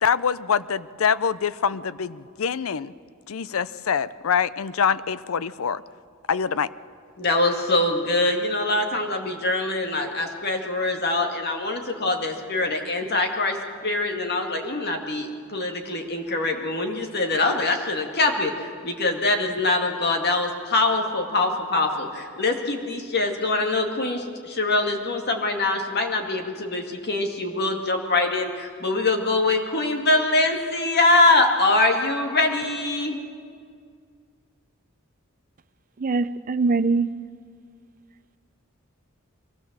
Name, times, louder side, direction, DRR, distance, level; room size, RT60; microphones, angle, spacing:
voice 1, 0.0-2.9 3.3-5.8 6.3-6.7, left 7 dB, 80° left, 17 dB, 0.5 m, -24 dB
voice 2, 7.2-33.2, left 2 dB, 50° left, 3 dB, 2.1 m, -23 dB
voice 3, 36.0-37.1, right 3 dB, 40° right, 12 dB, 0.5 m, -22 dB
23.0 x 16.5 x 7.4 m, 2.1 s
head